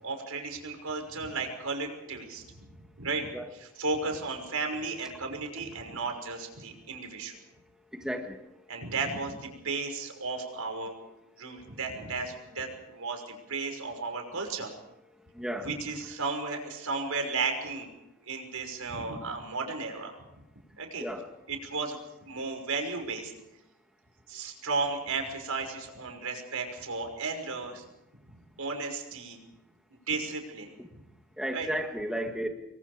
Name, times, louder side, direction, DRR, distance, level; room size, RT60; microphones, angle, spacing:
voice 1, 0.0-3.3 3.8-7.4 8.7-11.0 11.4-14.7 15.6-17.9 18.2-20.4 20.8-21.0 21.5-23.3 24.3-27.8 28.6-29.4 30.1-31.0 31.5-31.7, right 4 dB, 75° right, 4 dB, 5.8 m, -34 dB
voice 2, 7.9-8.4 15.3-15.7 21.0-21.3 30.8-30.9 31.4-32.5, equal, 5° right, 2 dB, 1.7 m, -33 dB
28.0 x 22.0 x 5.0 m, 0.88 s
head